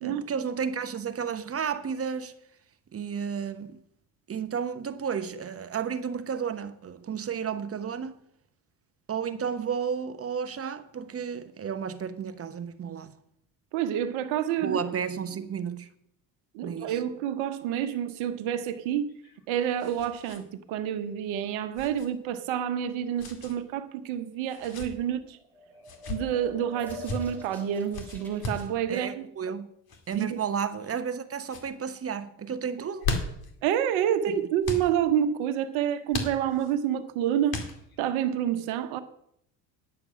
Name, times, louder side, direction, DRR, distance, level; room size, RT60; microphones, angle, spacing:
voice 1, 0.0-2.3 2.9-3.8 4.3-8.2 9.1-13.1 14.6-15.9 16.6-17.0 28.9-29.7 30.1-33.1, right 7 dB, 30° right, 0.9 m, -32 dB
voice 2, 13.7-14.8 16.5-19.1 19.5-25.4 26.1-29.2 30.1-30.4 33.6-37.6 38.0-39.0, right 10 dB, 70° right, 1.2 m, -28 dB
sound 1, 19.1-20.4 20.7-20.8 21.7-22.1 23.2-23.5 24.5-24.9 25.8-26.2 26.8-27.2 27.9-28.7 29.9-30.2 30.8-31.2 31.4-31.7 32.7-33.5 34.6-34.9 36.1-36.7 37.5-38.0, left 3 dB, 45° left, 2.2 m, -35 dB
sound 2, 25.3-28.7, left 2 dB, 5° left, 3.2 m, -45 dB
10.0 x 6.8 x 6.1 m
supercardioid pair, 85°, 49 cm